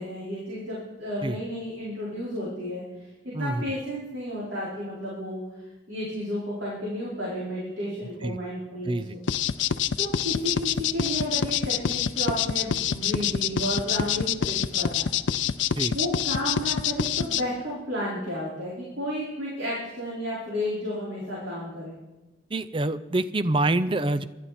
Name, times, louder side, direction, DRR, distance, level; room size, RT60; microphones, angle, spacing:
voice 1, 0.0-2.8 3.2-9.2 10.0-15.1 15.9-21.9, equal, 80° right, -7 dB, 4.7 m, -32 dB
sound 1, 9.3-17.4, left 8 dB, 80° left, 0.5 m, -26 dB
voice 2, 22.5-24.3, right 2 dB, 25° right, 13 dB, 0.5 m, -26 dB
23.0 x 12.5 x 4.3 m, 1.1 s
head